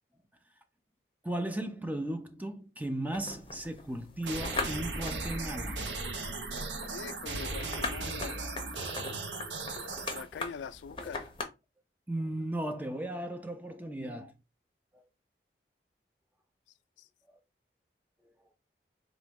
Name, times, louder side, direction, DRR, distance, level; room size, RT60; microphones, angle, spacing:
voice 1, 1.2-5.8 9.6-9.7 10.0-10.1 12.1-14.3 14.9-15.0, right 1 dB, 10° right, 0.4 m, -36 dB
sound 1, 3.1-11.4, left 4 dB, 30° left, 0.6 m, -41 dB
sound 2, 4.2-10.2, right 3 dB, 85° right, 0.8 m, -37 dB
voice 2, 6.9-8.5 10.1-11.3 17.0-17.1, left 6 dB, 90° left, 0.3 m, -43 dB
3.9 x 2.9 x 3.5 m
head